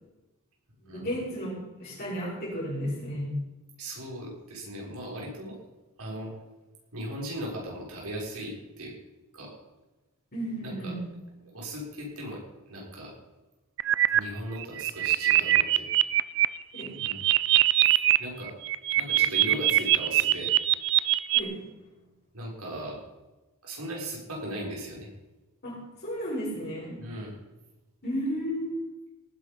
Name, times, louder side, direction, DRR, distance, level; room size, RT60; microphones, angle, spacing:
voice 1, 0.8-3.3 10.3-11.0 16.7-16.9 21.3-21.6 25.6-25.8 26.0-27.0 28.0-28.8, equal, 45° left, -7 dB, 6.3 m, -33 dB
voice 2, 3.8-5.6 6.0-6.3 6.9-8.9 9.3-9.5 10.6-10.9 11.5-12.4 12.7-13.1 14.1-15.9 17.0-17.2 18.2-18.5 19.0-20.5 22.3-23.0 23.6-25.1 27.0-27.4, right 1 dB, 85° right, -3 dB, 6.3 m, -37 dB
sound 1, 13.8-14.2 14.6-16.5 16.8-18.2 18.5-21.4, right 14 dB, 55° right, 0.5 m, -22 dB
18.5 x 10.5 x 5.5 m, 1.1 s
head